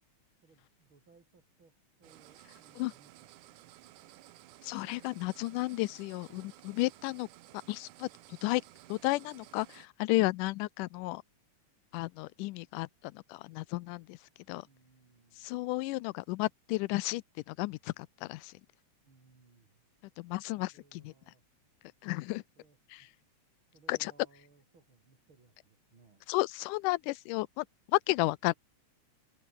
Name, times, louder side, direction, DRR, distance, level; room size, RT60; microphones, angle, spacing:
voice 1, 0.4-3.3 14.6-15.5 19.0-19.8 20.6-21.4 22.6-23.1 23.7-26.2, right 4 dB, 40° right, 4.6 m, -64 dB
sound 1, 2.0-9.9, right 15 dB, 80° right, 2.4 m, -56 dB
voice 2, 4.6-7.3 7.7-8.6 8.9-11.2 11.9-14.2 14.5-14.7 15.4-18.6 20.2-21.1 22.0-22.4 22.9-23.1 23.9-24.1 26.3-28.5, left 21 dB, 90° left, 2.2 m, -33 dB
omnidirectional pair, 3.6 m